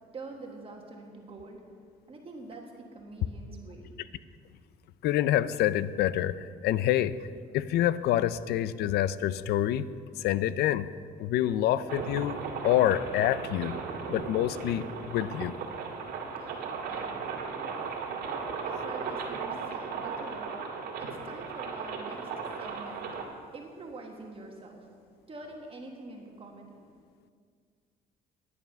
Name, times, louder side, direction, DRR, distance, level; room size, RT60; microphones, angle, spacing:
voice 1, 0.1-1.6 2.1-3.9 16.4-17.2 18.6-22.2 22.6-23.1 23.5-24.9 25.3-26.9, right 3 dB, 35° right, 1 dB, 1.5 m, -45 dB
voice 2, 5.0-7.2 7.5-9.9 10.2-10.9 11.2-12.4 12.6-13.7 14.1-15.5, left 12 dB, 70° left, 16 dB, 0.4 m, -27 dB
sound 1, 11.9-23.2, right 5 dB, 70° right, 1.9 m, -36 dB
11.0 x 9.5 x 5.4 m, 2.1 s
cardioid pair, 110°, 17 cm